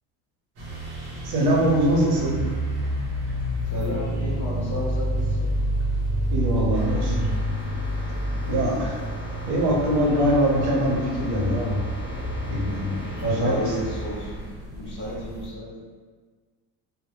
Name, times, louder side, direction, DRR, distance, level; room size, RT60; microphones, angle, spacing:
sound 1, 0.6-15.5, equal, 45° right, 0.7 m, -29 dB
voice 1, 1.2-2.4 6.3-7.3 8.0-8.1 8.4-9.0 9.4-11.8 12.5-12.9 13.2-13.5, right 1 dB, 85° right, -3 dB, 0.7 m, -23 dB
voice 2, 3.7-5.5 13.2-14.5 14.8-15.8, equal, 35° left, -6 dB, 0.6 m, -31 dB
sound 2, 6.7-14.5, right 1 dB, 90° left, 0.9 m, -35 dB
2.1 x 2.0 x 2.9 m, 1.5 s
cardioid pair, 165°, 37 cm